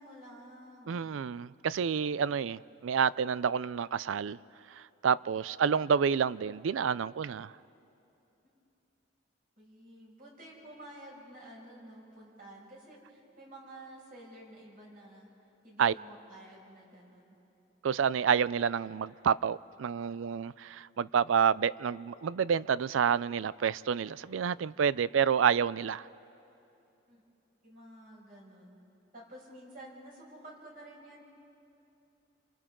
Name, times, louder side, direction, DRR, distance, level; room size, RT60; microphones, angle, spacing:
voice 1, 0.0-1.0 9.6-15.3 15.6-17.4 27.1-27.2 27.6-28.8 29.1-31.2, right 1 dB, 45° right, 5.9 m, -51 dB
voice 2, 0.9-4.4 4.7-7.5 15.8-15.9 17.8-26.1, right 7 dB, 85° right, 0.4 m, -29 dB
29.5 x 26.5 x 3.8 m
head